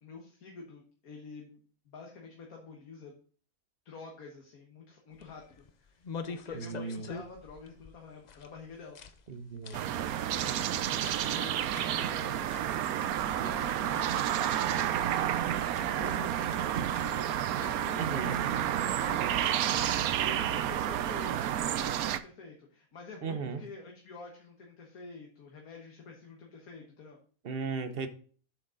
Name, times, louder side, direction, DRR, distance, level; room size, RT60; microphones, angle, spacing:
voice 1, 0.0-1.6 1.9-3.2 3.9-9.0 10.1-10.9 11.3-12.5 13.3-15.3 15.8-18.4 18.8-27.2, left 3 dB, 85° left, 1.8 m, -48 dB
sound 1, 5.1-19.3, left 5 dB, 55° left, 0.5 m, -49 dB
voice 2, 6.5-7.1 9.3-9.8 18.0-18.4 23.2-23.6 27.4-28.1, right 5 dB, 50° right, 0.9 m, -36 dB
sound 2, 9.7-22.2, right 11 dB, 85° right, 1.1 m, -30 dB
7.8 x 6.4 x 3.7 m
omnidirectional pair, 1.5 m